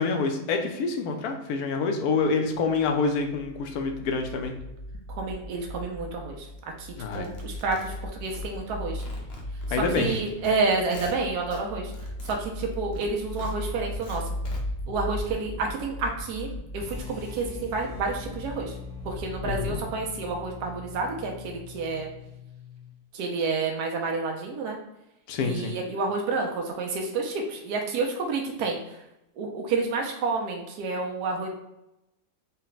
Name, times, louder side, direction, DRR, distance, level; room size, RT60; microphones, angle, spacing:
voice 1, 0.0-4.5 7.0-7.3 9.7-10.2 19.4-19.8 25.3-25.7, left 4 dB, 70° left, 4 dB, 1.1 m, -27 dB
sound 1, 2.7-19.8, left 1 dB, 60° right, 1.0 m, -37 dB
voice 2, 5.1-6.5 6.8-9.0 10.0-11.9 12.2-14.3 14.9-18.8 19.0-22.1 23.1-24.8 25.4-29.0 29.4-31.5, right 3 dB, 80° right, 1 dB, 1.1 m, -29 dB
sound 2, 7.1-8.7 9.0-10.5 10.8-11.6 11.9-14.6, left 3 dB, 50° left, 0.8 m, -45 dB
sound 3, 16.8-22.9, left 5 dB, 5° right, 0.8 m, -42 dB
4.1 x 2.2 x 3.9 m, 0.88 s
omnidirectional pair, 1.7 m